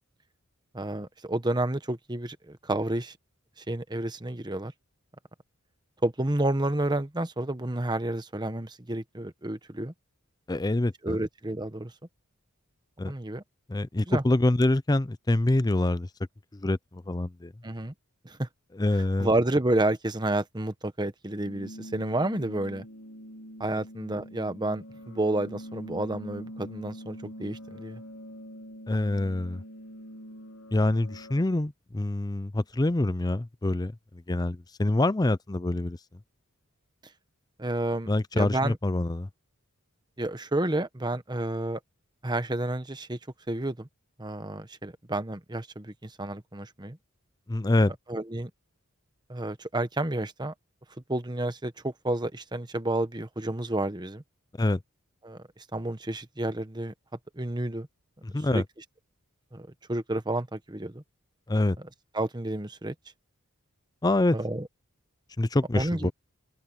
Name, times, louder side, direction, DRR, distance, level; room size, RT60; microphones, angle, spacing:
voice 1, 0.7-3.2 3.7-4.7 6.0-9.9 11.0-11.9 13.0-13.4 14.1-14.2 17.6-17.9 18.2-18.5 19.2-22.8 23.6-28.0 37.6-38.8 40.2-41.8 42.2-43.2 43.5-43.9 44.2-47.0 48.1-48.5 49.3-50.5 51.1-54.2 55.2-55.4 55.7-56.9 57.4-57.9 58.5-58.6 59.5-61.0 62.1-62.9 64.3-64.7 65.7-66.1, right 1 dB, 20° right, 1.1 m, -30 dB
voice 2, 10.5-11.2 13.0-13.1 13.7-16.1 16.5-17.5 18.7-19.3 28.9-29.6 30.7-36.0 38.1-39.3 47.5-47.9 54.6-54.8 58.2-58.6 61.5-61.8 64.0-64.4 65.4-66.1, left 2 dB, 20° left, 0.5 m, -26 dB
sound 1, 21.4-31.4, equal, 80° left, 2.2 m, -44 dB
open air
head